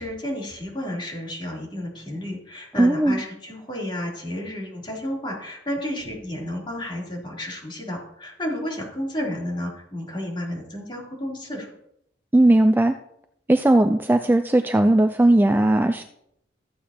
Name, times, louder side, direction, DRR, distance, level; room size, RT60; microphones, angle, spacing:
voice 1, 0.0-11.7, left 1 dB, 25° left, -3 dB, 3.3 m, -31 dB
voice 2, 2.8-3.2 12.3-12.9 13.5-16.0, right 1 dB, 10° right, 7 dB, 0.3 m, -18 dB
13.5 x 8.4 x 2.9 m, 0.76 s
head